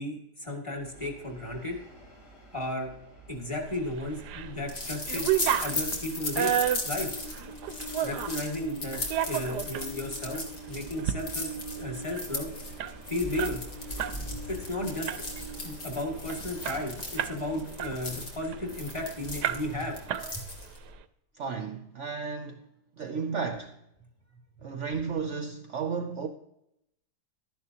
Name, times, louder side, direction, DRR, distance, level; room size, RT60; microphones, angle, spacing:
voice 1, 0.0-1.8 2.5-2.9 3.3-5.3 5.6-6.6 6.8-7.2 8.0-11.5 11.8-12.5 13.1-13.6 14.5-15.1 15.6-20.0, left 1 dB, 20° left, 2.2 m, -34 dB
Train, 0.8-20.2, right 1 dB, 80° left, 4.2 m, -46 dB
sound 1, 3.5-20.9, left 2 dB, 50° left, 2.2 m, -37 dB
sound 2, 4.0-4.5 4.8-8.4 8.9-9.9 10.3-10.5 10.9-11.2 11.5-11.6 11.9-14.2 14.5-14.7 15.1-15.5 16.0-16.1 16.3-17.4 17.8-19.0 19.4-19.8 20.1-20.7, right 11 dB, 85° right, 1.2 m, -31 dB
voice 2, 21.4-22.6 23.0-23.7 24.6-26.3, right 5 dB, 55° right, 0.9 m, -33 dB
12.5 x 10.5 x 2.9 m
omnidirectional pair, 1.8 m